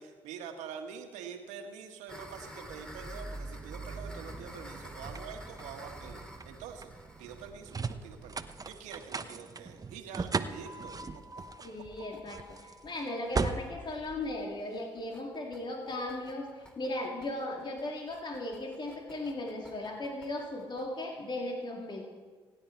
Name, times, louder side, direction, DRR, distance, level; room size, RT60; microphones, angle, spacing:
voice 1, 0.0-6.9 7.2-11.4 11.7-11.9, right 7 dB, 75° right, 5 dB, 1.8 m, -46 dB
sound 1, 2.1-9.7 10.1-10.2 10.5-10.6 10.8-10.9 11.2-11.5 11.8-20.9, equal, 5° left, 3.2 m, -51 dB
sound 2, 2.6-15.0, right 4 dB, 30° right, 1.0 m, -39 dB
voice 2, 11.6-22.0, left 1 dB, 40° left, 0 dB, 2.5 m, -37 dB
27.0 x 9.5 x 4.6 m, 1.5 s
hypercardioid pair, 45°, 12 cm